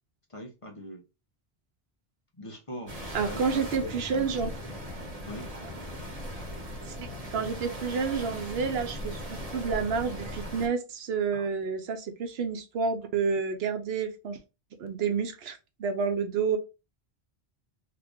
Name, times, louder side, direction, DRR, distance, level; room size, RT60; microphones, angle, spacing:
voice 1, 0.3-1.0 2.3-4.3 5.3-5.5 11.3-11.5, equal, 35° left, 0.8 m, -42 dB
sound 1, 2.9-10.7, equal, 35° right, 1.1 m, -38 dB
voice 2, 3.1-4.5 6.9-14.4 14.8-16.6, right 5 dB, 75° right, 0.9 m, -29 dB
2.9 x 2.4 x 3.5 m
omnidirectional pair, 1.1 m